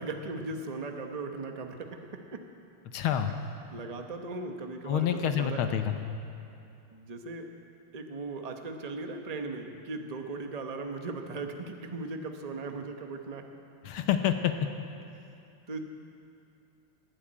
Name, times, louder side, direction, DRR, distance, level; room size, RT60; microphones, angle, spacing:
voice 1, 0.0-2.4 3.7-5.8 6.9-7.5 7.9-13.4 15.7-15.8, right 3 dB, 40° right, 4 dB, 0.5 m, -38 dB
voice 2, 2.9-3.3 4.9-6.0 13.8-14.5, left 9 dB, 75° left, 7 dB, 1.7 m, -27 dB
19.0 x 8.4 x 8.8 m, 2.6 s
omnidirectional pair, 2.4 m